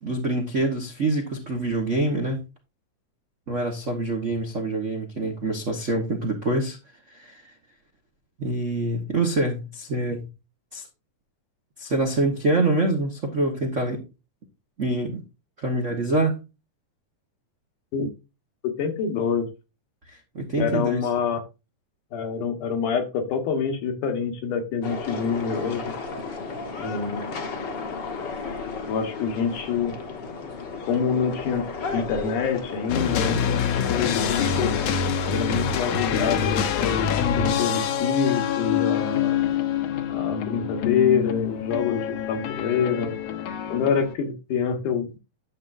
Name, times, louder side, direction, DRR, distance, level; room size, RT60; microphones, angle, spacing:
voice 1, 0.0-2.4 3.5-6.8 7.1-7.4 8.4-10.3 10.7-10.9 11.8-14.0 14.8-15.2 15.6-16.4 20.1-21.0, right 2 dB, 55° right, 0.8 m, -25 dB
voice 2, 18.8-19.5 20.6-21.4 22.1-25.9 26.8-27.3 28.9-30.0 30.9-31.6 31.9-33.6 33.9-34.7 35.3-39.4 40.1-43.1 43.7-45.2, left 6 dB, 80° left, 3.1 m, -26 dB
sound 1, 24.8-34.9, left 4 dB, 50° left, 1.4 m, -34 dB
sound 2, 32.9-44.1, left 8 dB, 65° left, 1.7 m, -26 dB
10.5 x 7.4 x 2.6 m
omnidirectional pair, 3.6 m